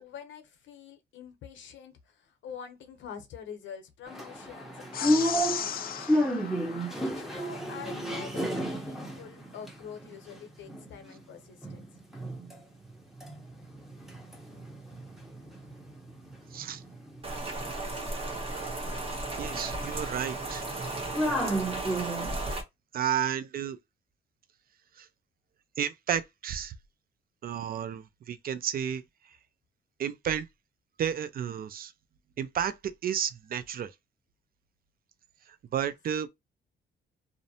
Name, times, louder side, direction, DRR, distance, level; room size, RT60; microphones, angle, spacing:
voice 1, 0.0-6.3 6.6-11.9 35.8-35.9, left 8 dB, 70° left, 0.7 m, -46 dB
sound 1, 4.1-11.2 11.6-12.6 12.8-22.4, equal, ahead, 0.8 m, -33 dB
sound 2, 4.9-7.6, left 9 dB, 50° left, 0.4 m, -36 dB
voice 2, 16.5-16.8 19.4-20.7 22.9-23.8 25.0-25.1 25.8-26.7 27.4-29.0 30.0-30.5 31.0-31.9 32.4-33.9 35.7-36.3, right 9 dB, 50° right, 0.4 m, -32 dB
Rain, 17.2-22.6, right 2 dB, 30° right, 1.0 m, -35 dB
2.5 x 2.1 x 2.7 m
cardioid pair, 90°, 20 cm